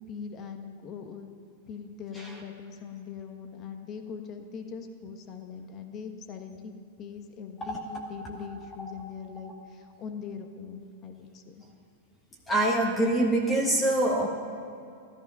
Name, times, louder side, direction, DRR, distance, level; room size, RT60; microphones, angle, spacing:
voice 1, 0.1-1.3 1.7-6.7 7.0-11.6, left 6 dB, 30° left, 6 dB, 1.3 m, -41 dB
voice 2, 12.5-14.3, right 1 dB, 15° left, 0 dB, 1.5 m, -26 dB
14.0 x 13.0 x 5.7 m, 2.6 s
hypercardioid pair, 140°, 0 cm